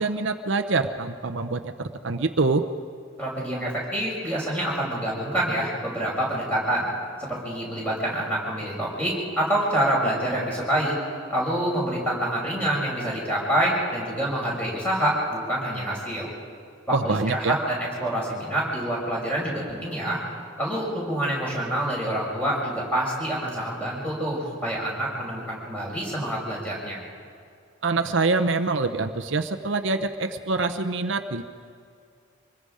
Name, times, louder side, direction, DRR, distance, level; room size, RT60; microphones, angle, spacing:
voice 1, 0.0-2.6 16.9-17.6 27.8-31.4, right 3 dB, 65° right, 7 dB, 0.8 m, -25 dB
voice 2, 3.2-6.9 7.2-11.0 11.3-16.3 16.9-20.2 20.6-27.0, right 1 dB, 5° left, -4 dB, 6.0 m, -27 dB
25.5 x 20.5 x 5.0 m, 2.4 s
head